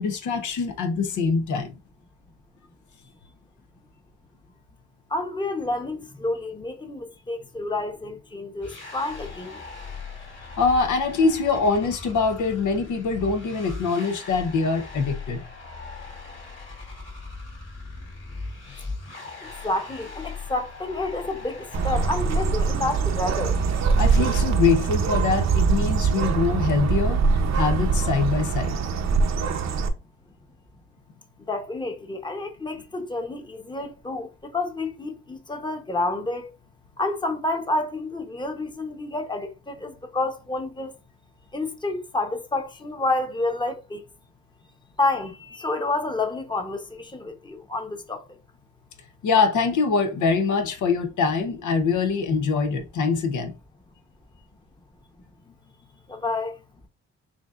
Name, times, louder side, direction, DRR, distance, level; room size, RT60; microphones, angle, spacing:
voice 1, 0.0-1.8 10.6-15.4 24.0-27.2 27.5-28.8 49.2-53.6, left 4 dB, 85° left, 0.8 m, -23 dB
voice 2, 5.1-9.6 19.6-23.6 31.4-36.5 37.0-40.9 41.5-44.0 45.0-48.2 55.5-55.6 56.1-56.6, left 2 dB, 15° left, 0.9 m, -29 dB
sound 1, 8.6-24.4, left 3 dB, 40° left, 2.1 m, -39 dB
Bird, 21.7-29.9, right 5 dB, 65° right, 0.8 m, -23 dB
6.0 x 2.7 x 2.4 m
cardioid pair, 80°, 29 cm